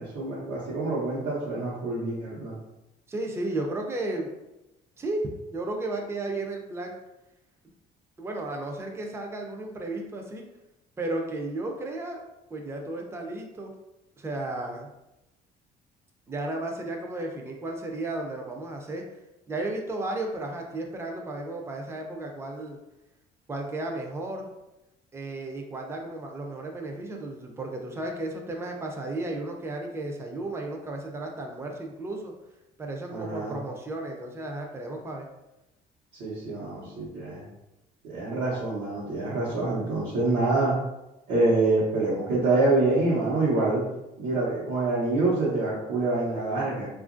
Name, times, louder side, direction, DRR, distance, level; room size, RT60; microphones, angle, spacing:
voice 1, 0.0-2.6 33.1-33.5 36.2-37.4 38.0-40.7 41.3-43.8 44.2-46.9, right 2 dB, 90° right, -9 dB, 0.9 m, -26 dB
voice 2, 3.1-4.3 5.0-6.9 8.2-10.4 11.0-12.2 12.5-13.7 14.2-14.9 16.3-19.0 19.5-22.8 23.5-24.5 25.1-32.3 32.8-35.3, right 2 dB, 15° right, 2 dB, 0.4 m, -34 dB
2.9 x 2.4 x 2.5 m, 0.94 s
cardioid pair, 110°, 17 cm